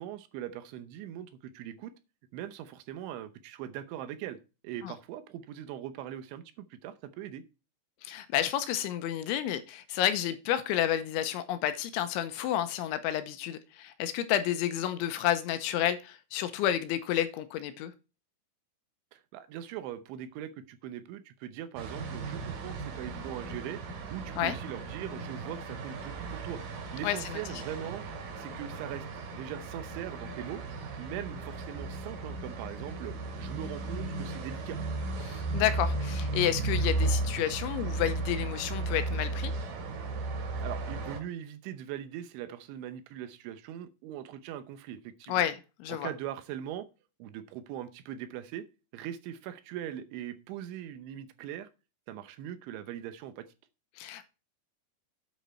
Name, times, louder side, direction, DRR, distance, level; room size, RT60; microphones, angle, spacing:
voice 1, 0.0-1.9 2.3-4.4 4.6-7.4 19.1-23.8 24.1-26.6 26.9-28.1 28.4-30.6 31.0-34.8 40.6-45.4 45.9-46.9 47.2-48.7 48.9-51.7 52.1-53.5, right 11 dB, 80° right, 3.1 m, -41 dB
voice 2, 8.0-17.9 24.4-24.6 27.0-27.4 35.2-39.5 45.3-46.1 54.0-54.3, left 11 dB, 80° left, 3.0 m, -30 dB
sound 1, 21.8-41.2, right 3 dB, 60° right, 4.0 m, -35 dB
9.2 x 7.2 x 4.3 m
omnidirectional pair, 5.6 m